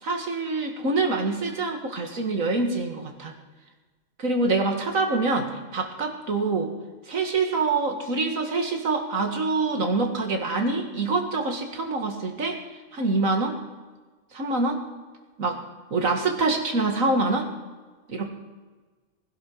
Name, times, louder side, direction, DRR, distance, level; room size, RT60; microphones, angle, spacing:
voice 1, 0.0-3.3 4.2-6.7 7.1-12.6 12.9-13.6 14.3-14.8 15.4-15.6 15.9-17.5 18.1-18.3, right 3 dB, 75° right, 3 dB, 2.3 m, -25 dB
20.5 x 11.0 x 4.7 m, 1.3 s
omnidirectional pair, 1.4 m